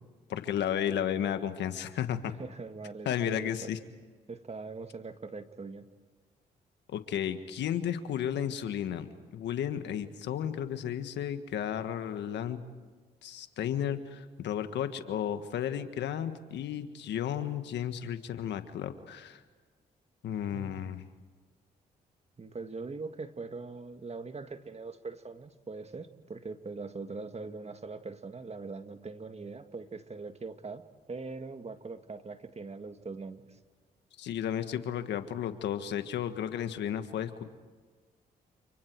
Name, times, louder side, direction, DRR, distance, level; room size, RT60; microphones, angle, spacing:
voice 1, 0.3-2.3 3.0-3.8 6.9-12.6 13.2-19.4 20.2-21.0 34.2-37.4, left 9 dB, 80° left, 9 dB, 1.6 m, -33 dB
voice 2, 2.4-3.7 4.3-5.9 20.5-20.9 22.4-33.6, right 4 dB, 35° right, 8 dB, 2.0 m, -42 dB
29.5 x 29.0 x 4.7 m, 1.4 s
supercardioid pair, 55°, 18 cm